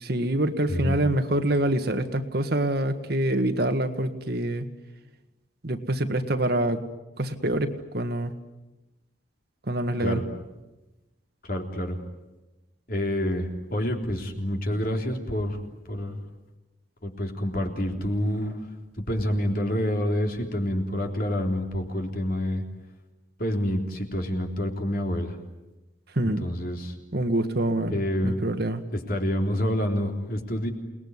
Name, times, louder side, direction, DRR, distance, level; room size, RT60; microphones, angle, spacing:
voice 1, 0.0-4.7 5.6-6.8 7.2-8.3 9.7-10.2 26.1-26.5 27.1-28.8, right 1 dB, 55° right, 7 dB, 1.8 m, -26 dB
voice 2, 11.4-12.0 12.9-15.6 15.9-16.3 17.0-18.6 19.0-22.6 23.4-25.4 26.4-26.9 27.9-28.5 28.9-30.7, left 1 dB, 50° left, 3 dB, 3.6 m, -27 dB
28.5 x 20.0 x 9.8 m, 1.1 s
head